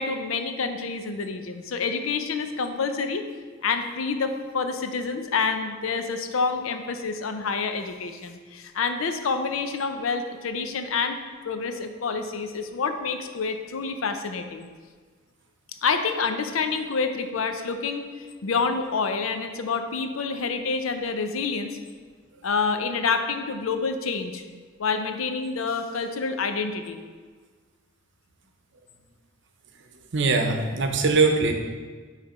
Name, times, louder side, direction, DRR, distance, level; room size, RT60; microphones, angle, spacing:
voice 1, 0.0-3.2 3.6-11.2 11.4-14.7 15.8-21.8 22.4-24.4 24.8-27.0, left 4 dB, 90° left, 7 dB, 0.6 m, -28 dB
voice 2, 30.1-31.5, right 3 dB, 65° right, 5 dB, 0.7 m, -21 dB
8.7 x 3.3 x 4.2 m, 1.5 s
head